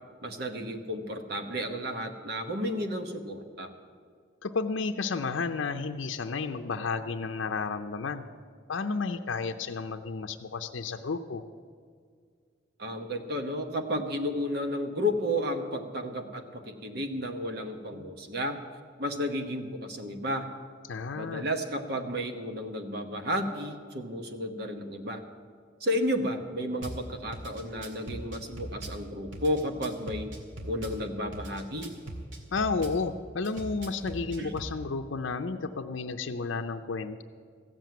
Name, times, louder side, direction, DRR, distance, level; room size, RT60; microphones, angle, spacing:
voice 1, 0.2-3.7 12.8-18.6 19.0-20.5 21.2-25.2 25.8-30.3 30.6-31.9 34.4-34.5, equal, 55° right, 6 dB, 1.0 m, -32 dB
voice 2, 4.4-8.2 8.7-11.4 17.9-18.1 20.9-21.5 32.5-37.2, left 4 dB, 75° left, 5 dB, 0.6 m, -32 dB
Drum kit / Bass drum, 26.8-27.0 27.3-29.0 29.3-31.0 31.3-33.0 33.4-34.7, right 1 dB, 80° right, 2.2 m, -40 dB
15.0 x 7.7 x 9.2 m, 2.1 s
head